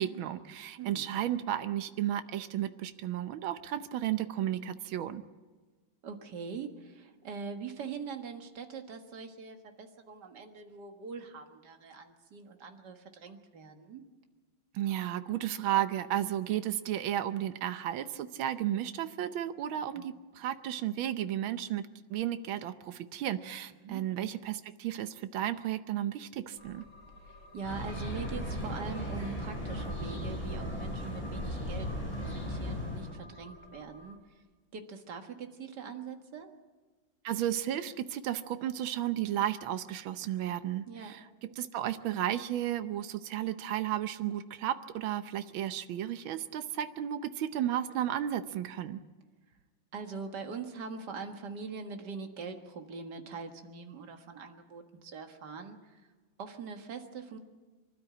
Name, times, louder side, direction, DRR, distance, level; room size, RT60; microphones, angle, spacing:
voice 1, 0.0-5.2 14.7-21.8 22.1-26.8 37.2-41.2 41.6-49.0, right 11 dB, 80° right, 10 dB, 1.7 m, -33 dB
voice 2, 0.8-1.1 6.0-14.0 20.0-20.1 23.8-24.0 27.3-31.9 32.2-34.2 34.7-36.5 40.9-41.1 49.9-56.0 56.4-57.4, right 5 dB, 55° right, 4 dB, 2.2 m, -43 dB
sound 1, 26.6-34.2, left 1 dB, 80° left, 3.9 m, -51 dB
sound 2, 27.6-33.1, equal, 15° left, 8.0 m, -36 dB
25.0 x 12.5 x 8.8 m, 1.3 s
omnidirectional pair, 2.2 m